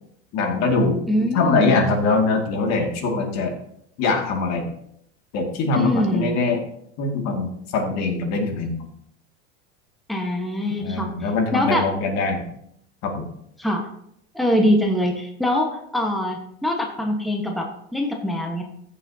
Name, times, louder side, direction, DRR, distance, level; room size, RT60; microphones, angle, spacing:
voice 1, 0.3-1.0 1.3-3.5 4.0-4.7 5.3-6.6 7.0-8.8 10.8-12.4 13.0-13.3, left 3 dB, 55° left, 3 dB, 2.3 m, -22 dB
voice 2, 1.1-1.8 5.7-6.4 10.1-11.9 13.6-13.9 14.3-18.6, left 1 dB, ahead, 1 dB, 1.3 m, -23 dB
15.0 x 7.3 x 2.8 m, 0.71 s
supercardioid pair, 110°, 32 cm